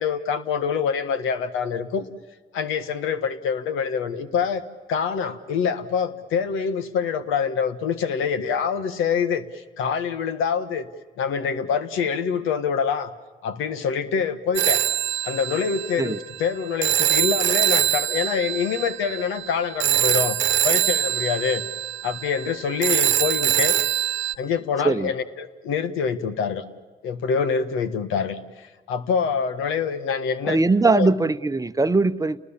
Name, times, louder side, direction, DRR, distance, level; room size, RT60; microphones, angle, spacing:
voice 1, 0.0-2.1 2.5-4.6 4.9-10.9 11.2-13.1 13.4-14.8 15.2-20.4 20.6-21.6 22.0-23.8 24.4-26.6 27.0-30.6 30.8-31.1, left 6 dB, 90° left, 11 dB, 1.6 m, -25 dB
Telephone, 14.6-24.3, right 12 dB, 70° right, 1.1 m, -23 dB
voice 2, 30.4-32.4, right 3 dB, 15° right, 11 dB, 0.8 m, -20 dB
30.0 x 20.0 x 7.3 m, 1.3 s
cardioid pair, 90°, 20 cm